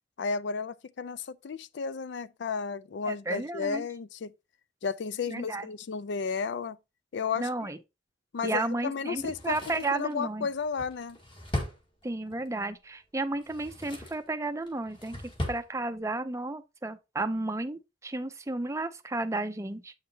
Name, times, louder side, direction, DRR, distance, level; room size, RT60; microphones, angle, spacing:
voice 1, 0.2-4.3 4.8-6.8 7.1-7.5 8.3-11.2, left 5 dB, 60° left, 0.4 m, -33 dB
voice 2, 3.1-3.9 5.3-5.7 7.4-7.8 8.4-10.5 12.0-15.2 15.5-19.9, right 2 dB, 15° right, 0.5 m, -33 dB
Drawer open or close, 9.2-12.5 13.3-14.3 14.7-15.7 16.0-16.1, left 1 dB, 25° left, 1.7 m, -38 dB
7.9 x 5.7 x 2.8 m
head